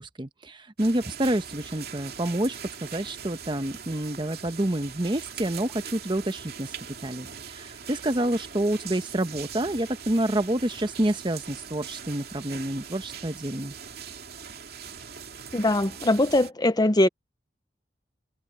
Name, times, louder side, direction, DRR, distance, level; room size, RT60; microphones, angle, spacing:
voice 1, 0.0-6.7 7.0-13.7, right 1 dB, 25° right, 1.1 m, -28 dB
sound 1, 0.8-16.5, right 7 dB, 60° right, 2.6 m, -41 dB
voice 2, 15.5-17.1, left 1 dB, 20° left, 0.7 m, -21 dB
head